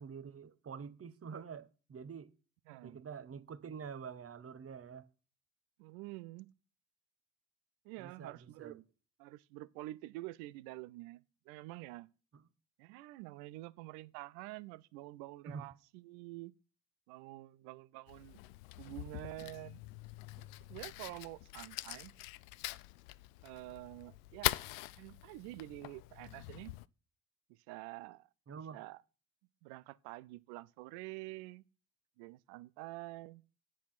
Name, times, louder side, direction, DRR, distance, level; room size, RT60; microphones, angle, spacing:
voice 1, 0.0-2.3 2.8-5.1 8.0-8.8 12.3-12.4 15.5-15.7 28.5-28.8, right 6 dB, 35° right, 1.3 m, -47 dB
voice 2, 2.7-3.0 5.8-6.5 7.8-8.8 9.2-12.1 12.8-16.5 17.1-18.4 18.8-19.8 20.4-22.1 23.4-24.5 25.0-26.7 27.5-28.3 28.7-29.0 29.6-31.6 32.2-33.4, right 19 dB, 70° right, 0.8 m, -48 dB
Fire, 18.1-26.9, left 19 dB, 75° left, 0.6 m, -43 dB
9.8 x 8.4 x 6.0 m
figure-of-eight pair, 50°, 41 cm